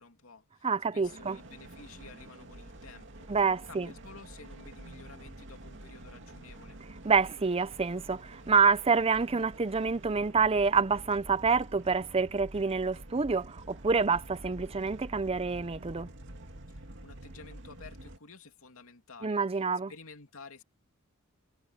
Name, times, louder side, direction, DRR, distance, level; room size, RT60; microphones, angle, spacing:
voice 1, 0.0-0.7 0.9-3.3 3.7-6.8 16.7-20.6, left 4 dB, 80° left, 2.7 m, -52 dB
voice 2, 0.6-1.4 3.3-3.9 7.0-16.1 19.2-19.9, right 5 dB, 30° right, 0.6 m, -27 dB
sound 1, 1.0-18.2, right 1 dB, 60° right, 2.4 m, -48 dB
head